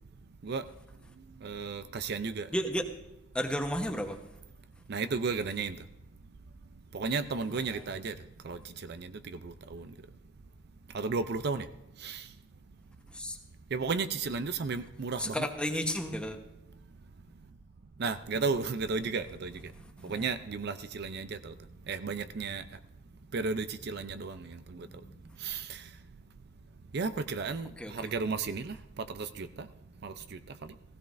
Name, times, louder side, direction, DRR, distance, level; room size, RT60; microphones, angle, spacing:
voice 1, 1.4-2.5 4.9-5.8 6.9-8.1 8.4-9.9 10.9-11.7 12.0-12.3 13.7-15.5 18.0-19.7 20.0-21.5 21.9-22.6 23.3-24.9 25.4-25.8 26.9-29.7 30.0-30.7, right 4 dB, 55° right, 11 dB, 0.5 m, -34 dB
voice 2, 2.5-2.9 3.3-4.2 13.1-13.4 15.2-16.4 20.0-20.2 25.0-25.1 27.8-27.9, equal, 5° left, 4 dB, 1.0 m, -32 dB
16.5 x 16.0 x 2.6 m, 0.92 s
head